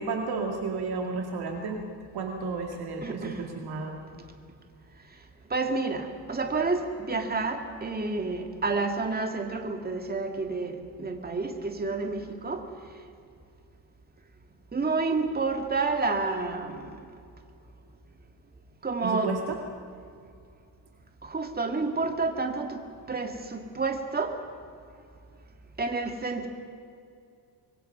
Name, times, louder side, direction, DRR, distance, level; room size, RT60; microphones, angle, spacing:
voice 1, 0.0-1.8 2.1-4.0 19.0-19.6, right 4 dB, 60° right, 2 dB, 2.2 m, -32 dB
voice 2, 3.0-3.4 5.5-12.6 14.7-16.9 18.8-19.3 21.2-22.8 23.1-24.3 25.8-26.5, right 3 dB, 20° right, 4 dB, 2.2 m, -29 dB
25.5 x 22.5 x 5.6 m, 2.4 s
cardioid pair, 135°, 43 cm